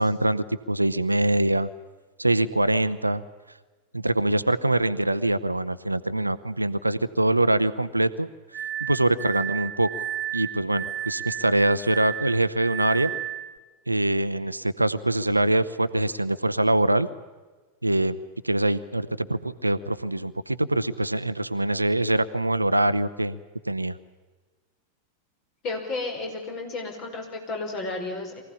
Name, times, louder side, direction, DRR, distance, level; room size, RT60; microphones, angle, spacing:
voice 1, 0.0-1.7 2.2-3.2 3.9-8.3 8.8-13.1 13.9-17.1 17.8-18.2 18.4-23.4 23.7-24.0, right 1 dB, 85° right, 13 dB, 0.8 m, -24 dB
Glass, 8.5-13.6, right 11 dB, 35° right, 0.8 m, -33 dB
voice 2, 25.6-28.4, left 3 dB, 40° left, 3 dB, 5.7 m, -32 dB
23.5 x 16.5 x 9.8 m, 1.3 s
figure-of-eight pair, 90°, 0 cm